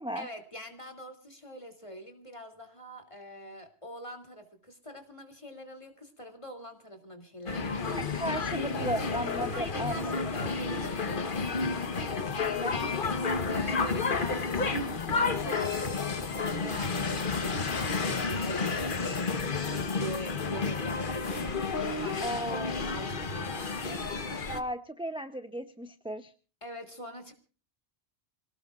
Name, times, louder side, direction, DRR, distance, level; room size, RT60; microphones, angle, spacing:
voice 1, 0.1-8.2 8.6-8.9 9.5-11.8 13.5-19.4 19.7-24.0 26.6-27.3, equal, 30° left, 5 dB, 2.9 m, -44 dB
sound 1, 7.5-24.6, left 4 dB, 50° left, 1.3 m, -31 dB
voice 2, 7.9-10.0 12.4-12.8 22.2-22.7 24.5-26.3, equal, 5° right, 8 dB, 0.7 m, -35 dB
27.5 x 18.0 x 2.5 m, 0.37 s
omnidirectional pair, 1.1 m